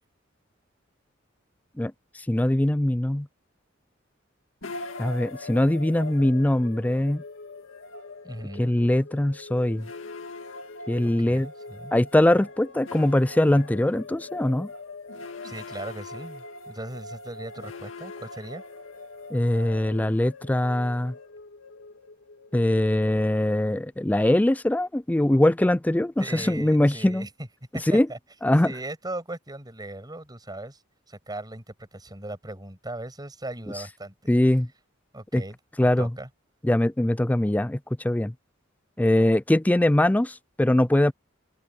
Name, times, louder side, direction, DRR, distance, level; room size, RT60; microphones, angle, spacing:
voice 1, 2.3-3.3 5.0-7.2 8.6-9.9 10.9-11.5 11.9-14.7 19.3-21.1 22.5-27.3 27.9-28.1 28.4-28.7 34.3-34.7 35.3-35.4 35.8-36.1 36.6-37.8 38.0-38.3 39.0-41.1, left 1 dB, 10° left, 0.4 m, -22 dB
sound 1, 4.6-23.7, left 2 dB, 80° left, 2.1 m, -42 dB
voice 2, 8.2-8.7 11.0-11.9 15.4-18.6 26.2-27.5 27.7-28.2 28.6-30.8 31.1-34.3 35.1-36.3, right 1 dB, 20° right, 7.2 m, -38 dB
head